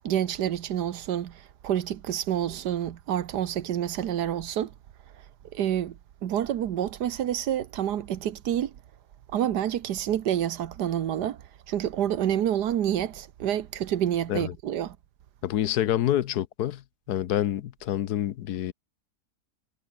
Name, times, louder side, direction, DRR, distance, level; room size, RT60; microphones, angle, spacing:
voice 1, 0.0-4.7 5.5-5.9 6.2-8.7 9.3-15.0, right 10 dB, 90° right, 1.6 m, -28 dB
voice 2, 15.4-16.8 17.1-18.7, left 12 dB, 75° left, 1.3 m, -27 dB
omnidirectional pair, 1.7 m